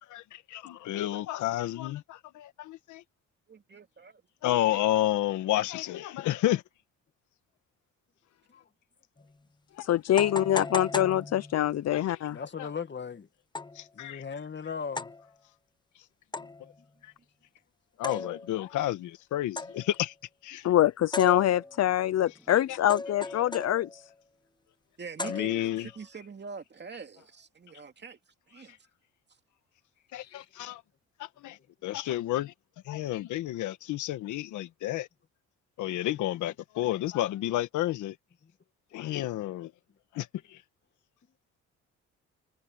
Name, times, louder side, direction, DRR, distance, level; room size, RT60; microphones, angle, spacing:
voice 1, 0.0-3.0 4.4-6.6 9.8-9.9 11.9-12.2 12.6-12.7 13.7-14.2 16.6-16.7 17.0-17.1 18.0-20.1 20.4-20.7 22.7-22.8 25.2-25.9 28.7-28.8 30.1-30.8 31.2-32.5 32.8-35.1 35.8-38.2 38.9-39.7 40.1-40.6, left 14 dB, 90° left, 1.6 m, -31 dB
voice 2, 3.5-4.2 25.0-28.8, right 5 dB, 35° right, 2.6 m, -44 dB
sound 1, 9.2-9.3 10.2-11.8 13.5-13.9 15.0-15.3 16.3-16.8 18.0-18.7 19.6-20.0 21.1-21.9 22.9-24.1 25.2-25.9, left 3 dB, 15° left, 1.3 m, -37 dB
voice 3, 9.8-12.4 20.6-24.0 30.3-30.4, left 12 dB, 60° left, 0.7 m, -25 dB
voice 4, 12.3-13.3 13.9-15.1 38.4-38.5, left 6 dB, 40° left, 2.2 m, -37 dB
sound 2, 21.6-25.3, right 1 dB, 5° right, 7.2 m, -62 dB
cardioid pair, 85°, 29 cm